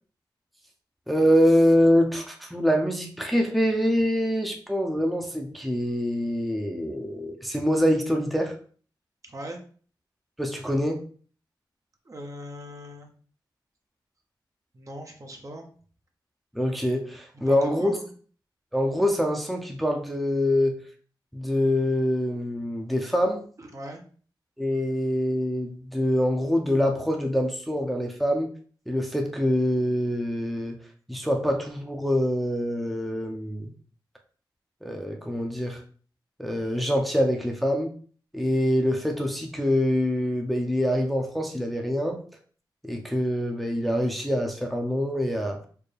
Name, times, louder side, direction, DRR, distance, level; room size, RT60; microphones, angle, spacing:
voice 1, 1.1-8.5 10.4-11.0 16.5-17.9 18.7-20.8 21.3-23.4 24.6-28.5 28.9-30.8 31.1-33.7 34.8-35.8 36.4-37.9 38.3-42.2 42.9-45.6, equal, ahead, 2 dB, 0.7 m, -25 dB
voice 2, 9.2-9.6 12.1-13.1 14.7-15.7 17.5-18.1 23.6-24.0, equal, 40° right, 2 dB, 0.8 m, -39 dB
4.4 x 2.1 x 3.3 m, 0.43 s
cardioid pair, 50°, 8 cm